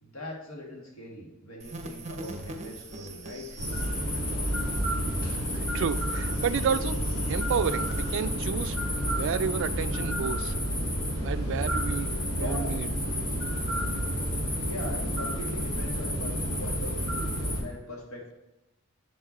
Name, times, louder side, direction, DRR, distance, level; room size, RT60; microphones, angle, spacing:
voice 1, 0.0-3.9 12.4-12.8 14.6-17.3 17.6-18.3, left 1 dB, 80° left, 0 dB, 1.6 m, -41 dB
sound 1, 1.6-8.3, right 2 dB, 35° right, 0.8 m, -43 dB
sound 2, 3.5-17.6, equal, 65° left, 2.6 m, -30 dB
sound 3, 4.0-10.1, left 2 dB, 40° left, 2.2 m, -43 dB
voice 2, 5.5-7.0 7.3-8.8 9.1-10.5 11.2-12.9, right 6 dB, 60° right, 13 dB, 0.3 m, -31 dB
7.4 x 4.9 x 4.1 m, 0.97 s
head